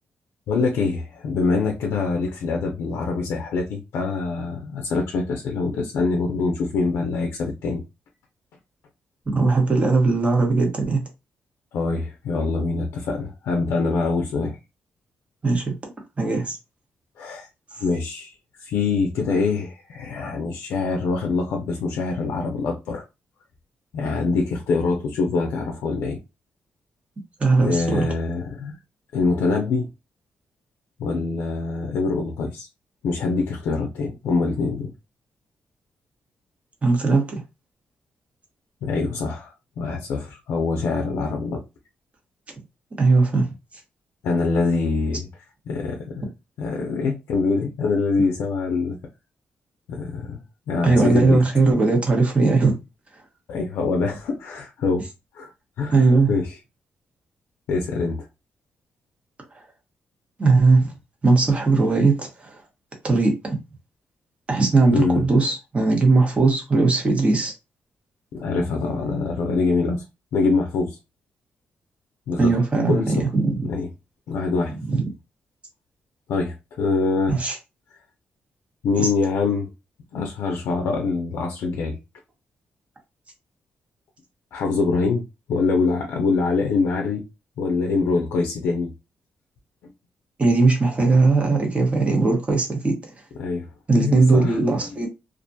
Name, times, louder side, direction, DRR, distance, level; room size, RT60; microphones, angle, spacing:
voice 1, 0.5-7.8 11.7-14.6 17.2-17.5 17.8-23.0 23.9-26.2 27.6-28.8 29.1-29.9 31.0-32.7 33.0-34.9 38.8-41.6 44.2-45.3 45.7-46.3 46.6-49.0 49.9-50.4 50.7-51.4 53.5-55.1 55.3-55.5 55.8-56.0 56.3-56.5 57.7-58.3 64.9-65.2 68.4-70.0 70.3-71.0 72.3-72.5 72.9-73.1 73.6-73.9 74.3-74.7 76.3-77.4 78.8-79.7 80.1-82.0 84.5-87.2 87.6-88.9 93.4-93.7 93.9-94.6, left 4 dB, 90° left, 0.4 m, -24 dB
voice 2, 9.3-11.0 15.4-15.7 16.2-16.6 27.4-28.1 36.8-37.4 43.0-43.5 50.8-52.8 55.9-56.3 59.5-59.6 60.4-60.9 61.2-62.6 63.0-63.6 64.5-67.5 72.4-73.7 74.9-75.1 77.3-77.6 79.0-79.1 90.4-93.1 93.9-95.1, right 3 dB, 30° right, 1.0 m, -19 dB
2.4 x 2.1 x 2.6 m
cardioid pair, 85°, 4 cm